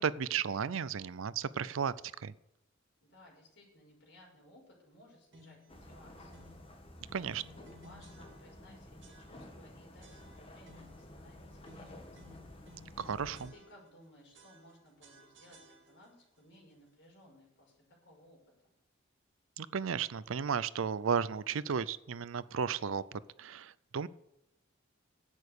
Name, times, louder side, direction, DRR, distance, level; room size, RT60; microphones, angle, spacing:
voice 1, 0.0-2.3 7.1-7.4 13.0-13.5 19.6-24.1, right 6 dB, 80° right, 18 dB, 0.5 m, -34 dB
voice 2, 3.0-6.5 7.1-12.2 13.1-13.2 13.5-17.7 18.0-18.4, left 1 dB, 55° left, -2 dB, 5.9 m, -60 dB
sound 1, 5.3-5.7 6.3-6.7 7.3-8.7 9.0-9.6 10.0-11.1 11.6-14.0 14.3-16.2, equal, 60° right, 2.0 m, -59 dB
sound 2, 5.7-13.5, left 1 dB, 25° left, 1.7 m, -52 dB
11.0 x 8.5 x 6.8 m, 0.82 s
head